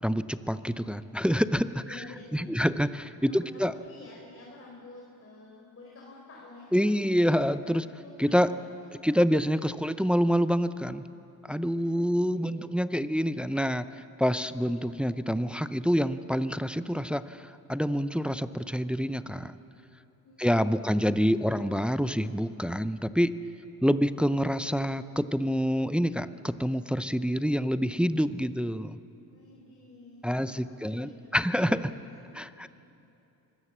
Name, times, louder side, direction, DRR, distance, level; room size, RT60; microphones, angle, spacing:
voice 1, 0.0-2.0 2.3-3.7 6.7-7.9 8.2-8.5 9.0-11.0 11.5-19.5 20.4-23.3 23.8-29.0 30.2-31.9 32.4-32.7, equal, ahead, 13 dB, 0.6 m, -27 dB
voice 2, 1.8-2.7 3.3-7.4 8.0-8.1 8.4-8.6 11.8-12.7 20.2-21.1 29.3-32.7, left 2 dB, 35° left, -2 dB, 4.1 m, -50 dB
25.0 x 16.5 x 7.4 m, 2.8 s
supercardioid pair, 75°, 43 cm